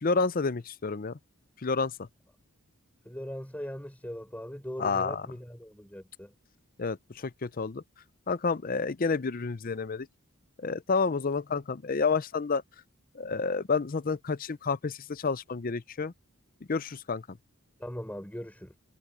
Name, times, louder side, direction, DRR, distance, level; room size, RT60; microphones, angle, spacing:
voice 1, 0.0-1.2 1.6-2.1 4.8-5.3 6.8-7.8 8.3-10.1 10.6-12.6 13.1-16.1 16.7-17.4, left 4 dB, 40° left, 0.5 m, -29 dB
voice 2, 3.1-6.3 17.8-18.8, equal, 5° left, 3.6 m, -40 dB
head